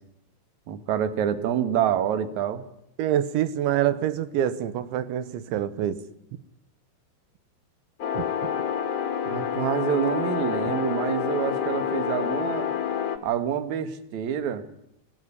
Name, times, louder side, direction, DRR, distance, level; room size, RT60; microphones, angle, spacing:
voice 1, 0.7-2.6 9.2-12.7 13.2-14.6, right 9 dB, 60° right, 10 dB, 2.1 m, -27 dB
voice 2, 3.0-6.0 8.1-8.2, right 11 dB, 85° right, 13 dB, 3.4 m, -26 dB
sound 1, 8.0-13.2, left 8 dB, 65° left, 1.4 m, -28 dB
23.0 x 17.0 x 9.9 m, 0.80 s
omnidirectional pair, 5.2 m